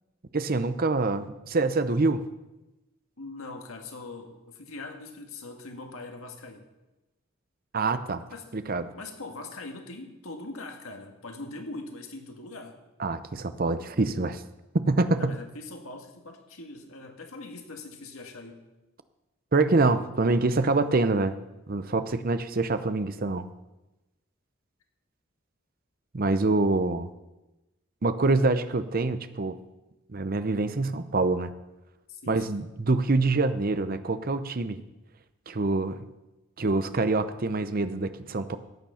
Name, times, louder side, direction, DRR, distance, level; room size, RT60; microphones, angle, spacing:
voice 1, 0.3-2.2 7.7-8.2 8.5-8.9 13.0-14.4 14.7-15.4 19.5-21.3 21.7-23.5 26.1-27.1 28.0-29.6 30.1-31.5 32.3-34.8 35.5-36.0 36.6-38.6, right 3 dB, 45° right, 11 dB, 0.7 m, -25 dB
voice 2, 3.2-6.7 8.3-8.5 8.9-12.8 15.1-18.6 32.1-32.6, left 2 dB, 85° left, 4 dB, 1.8 m, -42 dB
14.5 x 9.0 x 5.7 m, 1.0 s
head